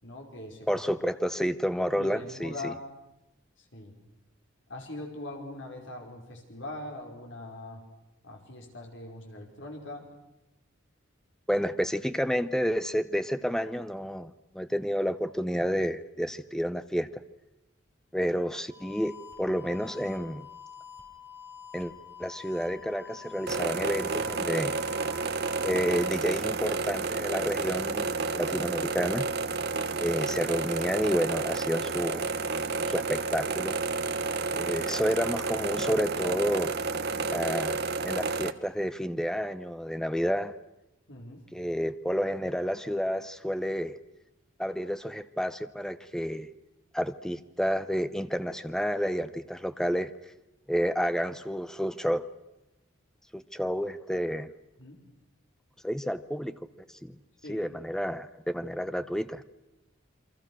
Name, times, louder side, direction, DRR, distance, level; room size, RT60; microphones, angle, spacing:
voice 1, 0.0-0.8 1.9-2.8 3.6-3.9 4.7-7.8 8.2-10.1 41.1-41.4 54.8-55.0 57.4-57.7, left 2 dB, 60° left, 2 dB, 5.3 m, -42 dB
voice 2, 0.7-2.7 11.5-17.2 18.1-20.5 21.7-21.9 22.2-24.7 25.6-29.3 30.0-32.3 32.9-33.8 34.5-36.8 37.3-40.5 41.5-44.0 44.6-46.5 46.9-50.1 50.7-52.2 53.3-54.5 55.8-56.5 57.0-57.2 57.5-59.4, equal, 5° left, 12 dB, 0.8 m, -30 dB
sound 1, 18.7-26.1, left 8 dB, 25° right, 6.8 m, -47 dB
sound 2, 23.5-38.5, right 4 dB, 50° right, 1.1 m, -30 dB
28.5 x 24.0 x 6.3 m, 0.93 s
head